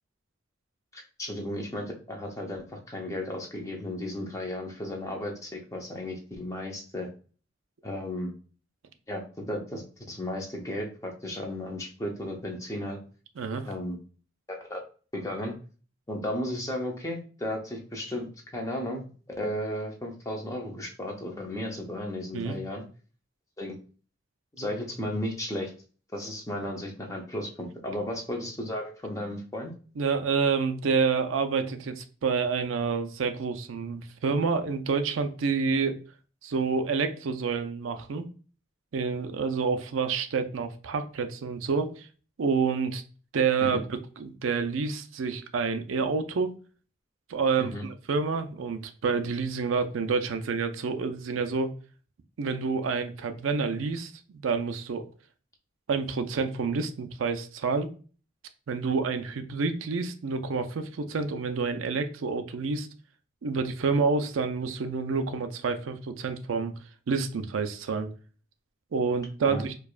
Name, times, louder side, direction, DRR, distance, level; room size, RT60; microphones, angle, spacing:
voice 1, 0.9-7.1 7.8-8.3 9.1-9.8 10.1-13.0 13.6-14.0 14.5-14.8 15.1-15.5 16.1-19.0 19.4-22.8 23.6-23.8 24.6-25.7 26.1-29.7 43.6-43.8 47.6-47.9 69.5-69.6, left 1 dB, 15° left, 1 dB, 0.6 m, -34 dB
voice 2, 13.4-13.7 22.3-22.6 30.0-36.0 36.4-38.3 38.9-42.1 42.4-43.0 43.3-46.6 47.3-51.7 52.4-55.1 55.9-57.9 58.7-62.9 63.4-66.7 67.1-68.1 68.9-69.7, right 5 dB, 85° right, 8 dB, 0.4 m, -28 dB
4.7 x 2.3 x 2.4 m, 0.38 s
head